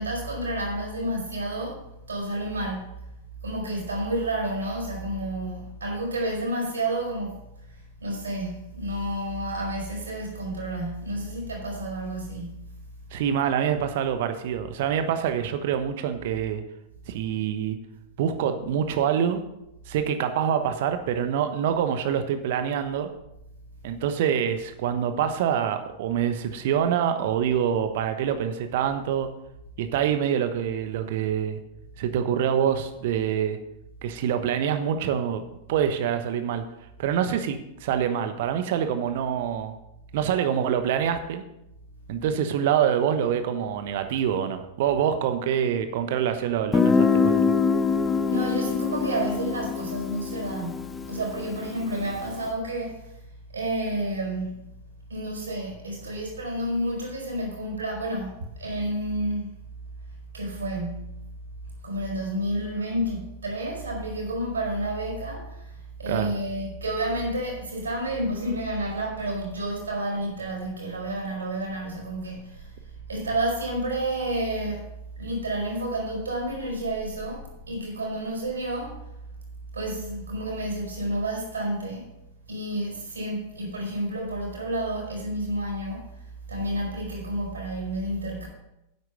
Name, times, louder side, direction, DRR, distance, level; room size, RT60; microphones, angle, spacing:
voice 1, 0.0-2.9 3.4-7.4 7.7-12.8 48.1-53.2 53.5-54.6 55.1-59.5 60.3-61.2 61.8-72.8 73.1-79.0 79.7-82.1 82.5-86.1 86.5-88.5, right 1 dB, 75° right, 4.6 m, -30 dB
voice 2, 13.1-16.6 17.1-17.8 18.2-19.4 19.9-23.1 23.8-29.3 29.8-31.6 32.0-33.6 34.0-35.4 35.7-36.6 37.0-39.8 40.1-41.4 42.1-47.5 66.1-66.3, right 8 dB, 55° right, 1.1 m, -25 dB
Guitar, 46.7-52.3, left 5 dB, 15° left, 0.4 m, -24 dB
9.9 x 8.0 x 5.3 m
figure-of-eight pair, 90°, 0 cm